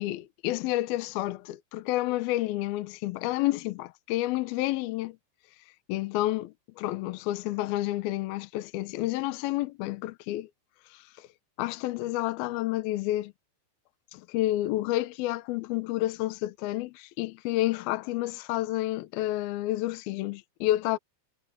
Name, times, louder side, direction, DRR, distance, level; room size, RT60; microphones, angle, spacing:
voice 1, 0.0-5.2 5.9-10.5 11.6-13.3 14.1-21.0, left 16 dB, 85° left, 2.2 m, -30 dB
omnidirectional pair, 5.6 m